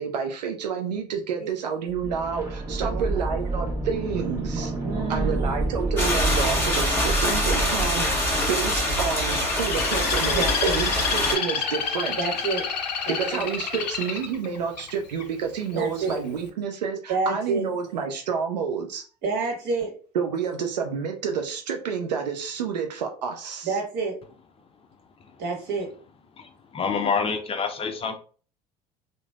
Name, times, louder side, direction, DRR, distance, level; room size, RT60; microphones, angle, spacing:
voice 1, 0.0-4.7 5.1-12.2 13.1-19.0 20.1-23.8, right 6 dB, 85° right, 4 dB, 0.4 m, -29 dB
sound 1, 1.9-9.7 10.0-10.1, right 2 dB, 15° right, 0.9 m, -29 dB
voice 2, 2.8-3.2 4.8-5.5 10.3-10.8 12.2-12.7 13.0-13.5 15.7-16.2 17.1-17.7 19.2-19.9 23.6-24.2 25.4-25.9, right 4 dB, 55° right, 1 dB, 1.2 m, -28 dB
sound 2, 6.0-11.4, left 1 dB, 10° left, 1.2 m, -24 dB
Bird, 9.2-15.2 15.8-16.2, left 6 dB, 85° left, 0.4 m, -29 dB
voice 3, 26.4-28.2, left 5 dB, 25° left, 6 dB, 0.4 m, -27 dB
3.1 x 2.1 x 2.3 m, 0.39 s
hypercardioid pair, 65°, 21 cm